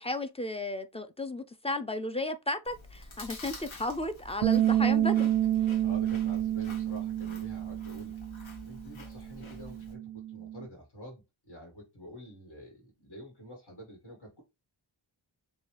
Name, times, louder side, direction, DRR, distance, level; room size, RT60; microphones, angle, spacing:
voice 1, 0.0-5.3, left 2 dB, 15° left, 0.5 m, -34 dB
Chewing mastication, 2.6-9.9, left 2 dB, 75° left, 1.4 m, -48 dB
Bass guitar, 4.4-10.7, right 12 dB, 90° right, 0.6 m, -29 dB
voice 2, 5.8-14.4, equal, 55° left, 2.0 m, -48 dB
6.8 x 2.3 x 3.2 m
wide cardioid pair, 85°, 48 cm